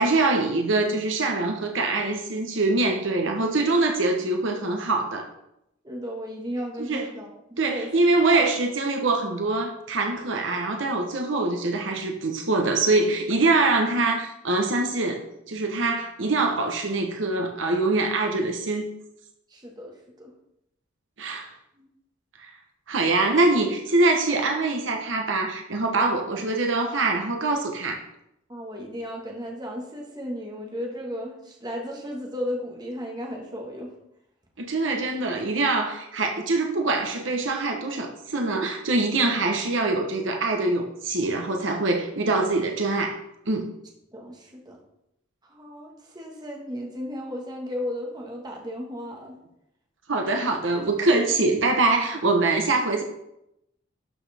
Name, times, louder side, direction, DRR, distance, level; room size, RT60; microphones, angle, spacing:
voice 1, 0.0-5.3 6.9-7.1 7.6-18.9 21.2-21.5 22.4-22.5 22.9-28.0 34.6-43.2 43.5-43.7 50.1-53.0, right 3 dB, 70° right, 3 dB, 1.1 m, -24 dB
voice 2, 5.8-7.9 8.3-8.4 19.5-20.3 21.7-21.9 26.0-26.4 28.5-33.9 44.1-44.8 45.4-49.3 52.5-52.6, equal, 20° right, 0 dB, 1.6 m, -35 dB
12.0 x 6.1 x 3.5 m, 0.83 s
head